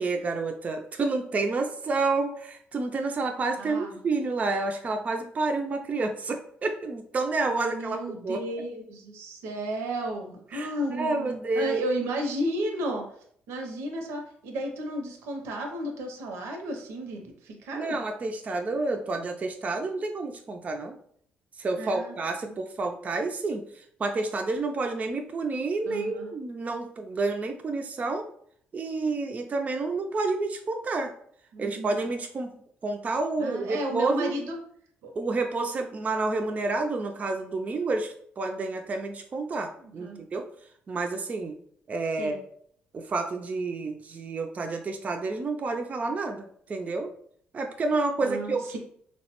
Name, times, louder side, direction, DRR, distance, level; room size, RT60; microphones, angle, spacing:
voice 1, 0.0-8.4 10.5-11.8 17.7-21.0 21.6-23.6 24.0-28.3 28.7-31.1 31.6-32.5 32.8-34.4 35.2-40.5 40.9-41.6 41.9-42.4 42.9-47.1 47.5-48.8, right 3 dB, 35° right, 4 dB, 0.3 m, -29 dB
voice 2, 3.6-4.0 7.6-13.0 13.5-18.0 21.8-22.1 25.9-26.3 31.5-32.0 33.4-34.6 35.0-35.1 39.8-40.2 42.2-42.4 48.2-48.8, right 1 dB, 85° right, 3 dB, 0.6 m, -33 dB
3.1 x 2.1 x 2.9 m, 0.63 s
cardioid pair, 80°, 4 cm